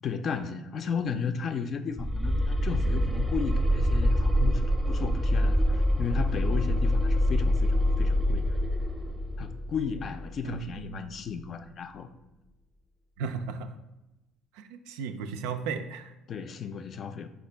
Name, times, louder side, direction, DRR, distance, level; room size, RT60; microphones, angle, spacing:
voice 1, 0.0-8.4 9.4-12.1 16.3-17.3, left 6 dB, 50° left, 9 dB, 0.4 m, -34 dB
sound 1, 2.0-10.9, equal, 5° right, 0.6 m, -26 dB
voice 2, 10.4-11.1 13.2-13.8 14.5-16.1, right 5 dB, 80° right, 8 dB, 0.3 m, -35 dB
4.2 x 2.4 x 4.4 m, 0.99 s
supercardioid pair, 80°, 0 cm